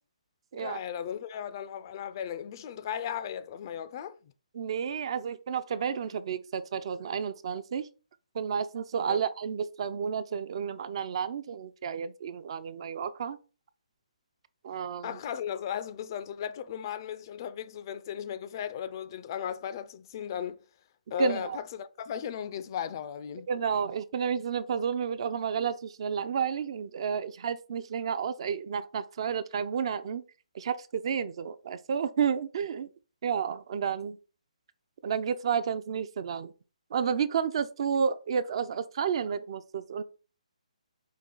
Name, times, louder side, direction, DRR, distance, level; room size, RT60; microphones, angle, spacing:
voice 1, 0.5-4.3 9.1-9.2 15.0-20.6 21.1-23.5, left 9 dB, 35° left, 0.3 m, -36 dB
voice 2, 4.5-7.9 8.3-13.4 14.6-15.2 21.2-21.6 23.5-30.2 30.5-32.9 33.2-34.2 35.0-36.5 36.9-40.0, right 7 dB, 45° right, 0.4 m, -31 dB
5.2 x 2.4 x 3.7 m
hypercardioid pair, 155°, 4 cm